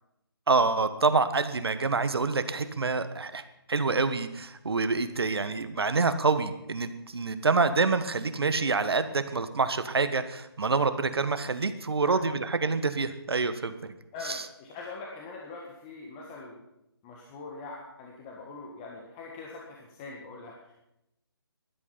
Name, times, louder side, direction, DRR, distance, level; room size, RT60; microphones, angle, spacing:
voice 1, 0.5-3.4 3.7-13.9 14.2-14.5, right 4 dB, 70° right, 11 dB, 1.4 m, -27 dB
voice 2, 12.0-12.4 14.1-16.6 17.0-20.7, left 3 dB, 20° left, -2 dB, 1.6 m, -43 dB
16.0 x 11.5 x 5.7 m, 0.87 s
figure-of-eight pair, 155°, 13 cm